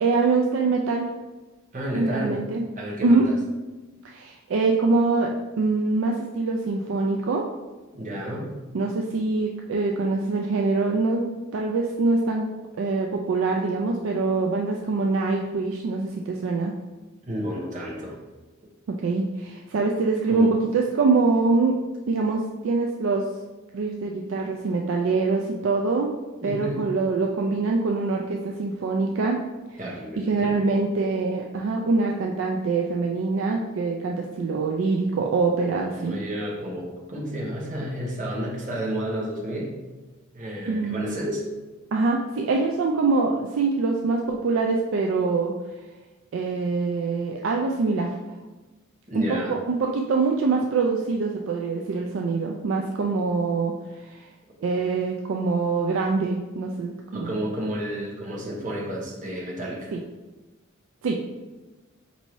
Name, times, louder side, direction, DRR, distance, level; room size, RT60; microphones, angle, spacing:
voice 1, 0.0-1.1 1.9-2.6 3.0-3.3 4.0-7.4 8.7-11.3 11.5-12.5 12.8-16.7 18.9-21.7 22.1-23.3 23.7-26.1 26.4-29.4 29.7-29.8 30.2-36.2 40.7-41.2 41.9-45.5 46.3-48.1 49.1-54.3 54.6-57.4 59.9-60.0 61.0-61.2, right 3 dB, 60° right, 1 dB, 0.3 m, -24 dB
voice 2, 1.7-2.4 2.8-3.3 7.9-8.5 17.2-18.2 20.3-20.5 26.4-26.9 29.8-30.5 35.9-39.7 40.3-41.5 49.1-49.6 57.1-59.9, equal, 35° right, -4 dB, 1.0 m, -31 dB
5.2 x 2.7 x 3.1 m, 1.2 s
head